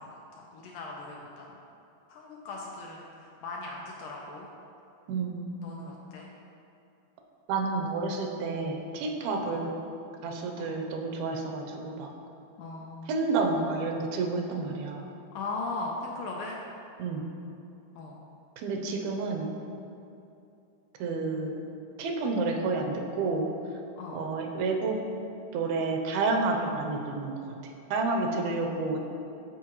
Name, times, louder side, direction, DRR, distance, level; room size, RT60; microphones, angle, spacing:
voice 1, 0.0-1.5 2.1-4.5 5.6-6.3 9.5-9.6 10.6-10.7 12.6-13.2 15.3-16.6 18.0-18.2 24.0-24.2 28.3-29.0, left 3 dB, 80° left, -1 dB, 1.9 m, -39 dB
voice 2, 5.1-5.4 5.7-5.9 7.5-9.7 10.2-12.1 13.1-15.1 17.0-17.2 18.6-19.5 21.0-21.6 22.0-23.5 24.1-25.0 25.5-27.4 27.9-29.0, right 3 dB, 85° right, 2 dB, 2.6 m, -30 dB
12.5 x 4.6 x 3.0 m, 2.7 s
omnidirectional pair, 4.2 m